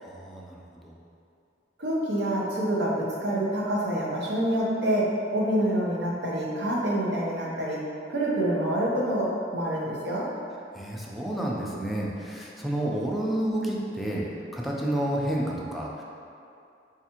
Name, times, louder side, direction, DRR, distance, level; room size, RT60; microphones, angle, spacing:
voice 1, 0.0-0.6 0.8-0.9 10.7-14.2 14.5-16.0, right 1 dB, ahead, -4 dB, 0.4 m, -30 dB
voice 2, 1.8-7.8 8.1-10.3, right 1 dB, 70° right, -4 dB, 0.7 m, -27 dB
4.4 x 2.4 x 2.8 m, 2.5 s
head